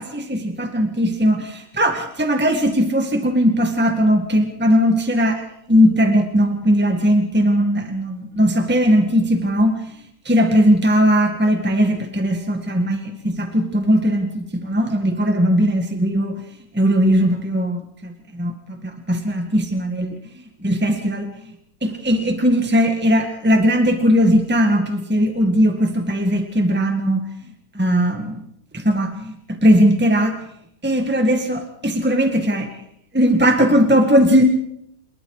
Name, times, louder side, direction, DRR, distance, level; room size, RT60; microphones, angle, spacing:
voice 1, 0.0-9.8 10.2-16.4 16.7-20.2 20.6-21.3 21.8-27.2 27.7-28.4 28.7-29.3 29.6-30.4 30.8-32.7 33.1-34.4, equal, 5° right, 5 dB, 1.8 m, -18 dB
28.0 x 22.0 x 4.9 m, 0.75 s
omnidirectional pair, 1.6 m